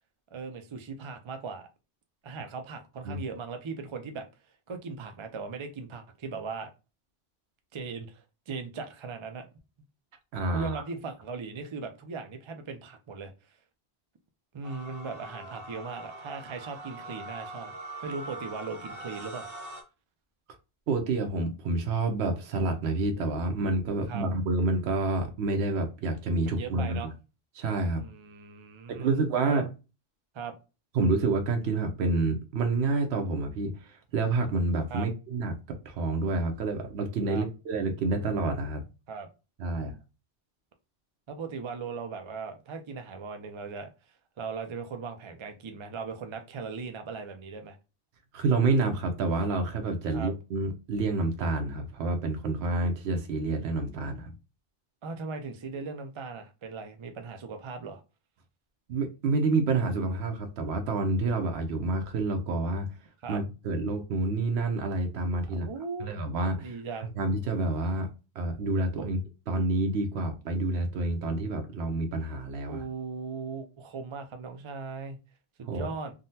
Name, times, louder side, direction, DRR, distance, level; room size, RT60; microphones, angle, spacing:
voice 1, 0.3-1.7 2.2-4.3 4.7-6.7 7.7-9.5 10.5-13.3 14.5-17.8 18.0-19.5 24.1-24.3 26.4-27.1 27.9-29.6 30.3-30.5 34.9-35.1 37.3-37.5 39.1-39.3 39.7-39.9 41.3-43.9 44.4-47.8 50.1-50.3 55.0-58.0 63.2-63.4 65.5-66.2 66.6-67.1 69.0-69.1 72.7-75.2 75.6-76.1, right 4 dB, 50° right, 0.3 m, -38 dB
voice 2, 10.3-10.7 20.9-27.1 27.6-28.0 28.9-29.7 30.9-35.5 35.9-38.8 39.6-39.9 48.3-54.3 58.9-62.9 63.3-65.7 66.0-66.8 67.2-68.1 68.4-69.2 69.5-72.8 75.7-75.9, right 3 dB, 85° right, 0.8 m, -28 dB
sound 1, 14.6-19.8, right 1 dB, 65° right, 1.0 m, -42 dB
3.7 x 2.1 x 2.6 m
omnidirectional pair, 1.1 m